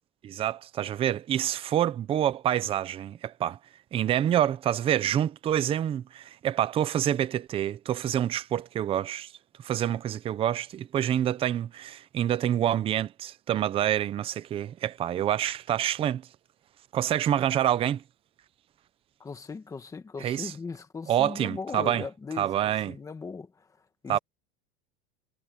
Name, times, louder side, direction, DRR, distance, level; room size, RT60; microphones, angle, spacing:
voice 1, 0.2-3.6 3.9-9.3 9.6-16.2 16.9-18.0 20.2-20.5 21.1-22.1 22.4-23.0 24.1-24.2, right 11 dB, 20° right, 0.6 m, -27 dB
voice 2, 19.2-23.5 24.0-24.2, left 4 dB, 10° left, 1.6 m, -38 dB
supercardioid pair, 170°, 29 cm